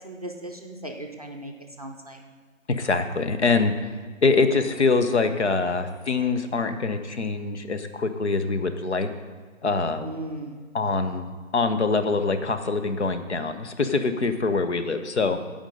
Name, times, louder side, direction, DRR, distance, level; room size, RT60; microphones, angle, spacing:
voice 1, 0.0-1.5 1.8-2.2 10.0-10.6, right 1 dB, 30° right, 1 dB, 0.6 m, -37 dB
voice 2, 2.7-3.9 4.2-9.1 9.6-10.1 10.7-11.3 11.5-15.4, left 4 dB, 55° left, 8 dB, 0.9 m, -24 dB
14.5 x 5.3 x 5.2 m, 1.6 s
figure-of-eight pair, 155°, 40 cm